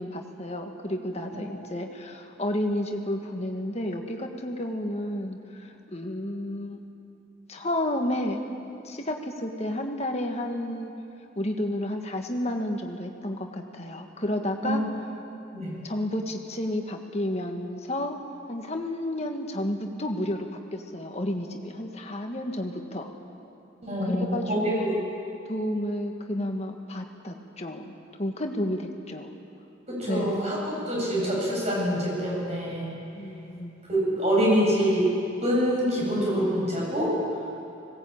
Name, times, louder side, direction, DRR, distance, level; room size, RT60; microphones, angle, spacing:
voice 1, 0.0-6.8 7.5-8.4 8.8-10.9 11.3-14.8 15.8-18.2 18.5-23.1 24.0-24.9 25.5-29.3 30.1-30.4 33.1-33.8, left 1 dB, 30° left, 3 dB, 1.7 m, -31 dB
voice 2, 23.8-24.6 24.9-25.0 29.9-33.0 33.9-35.1 35.4-37.1, equal, 30° right, -5 dB, 7.6 m, -25 dB
20.5 x 18.0 x 8.8 m, 2.8 s
head